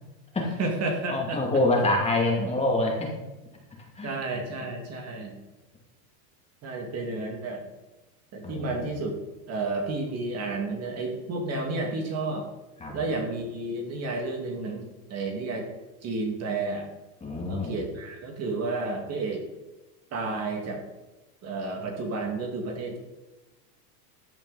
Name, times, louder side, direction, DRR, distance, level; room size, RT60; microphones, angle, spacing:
voice 1, 0.6-1.4 4.0-5.4 6.6-7.7 8.3-9.1 9.5-12.5 12.9-15.7 16.0-16.9 17.5-19.4 20.1-20.8 21.4-23.0, right 3 dB, 30° right, 2 dB, 2.1 m, -31 dB
voice 2, 1.1-3.1 4.0-4.4 8.4-8.9 12.8-12.9 17.2-17.8, left 2 dB, 15° left, -1 dB, 2.3 m, -26 dB
14.5 x 8.8 x 4.0 m, 1.1 s
supercardioid pair, 145°, 49 cm